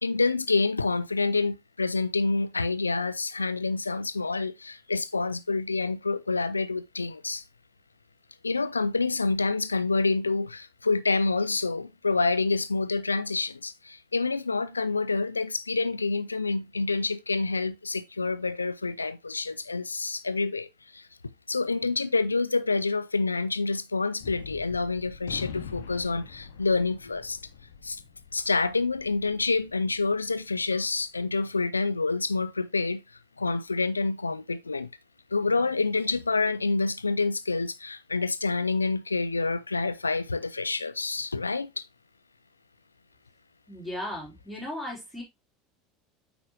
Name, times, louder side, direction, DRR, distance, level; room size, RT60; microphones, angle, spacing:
voice 1, 0.0-7.4 8.4-21.0 21.5-27.4 27.8-28.0 28.3-33.0 33.4-34.9 35.3-41.9, left 3 dB, 85° left, 0.4 m, -27 dB
Gunshot gunfire, 24.2-30.8, left 7 dB, 70° left, 0.9 m, -44 dB
voice 2, 43.7-45.2, left 1 dB, 5° left, 4.3 m, -36 dB
8.5 x 5.0 x 2.9 m
figure-of-eight pair, 75°, 0 cm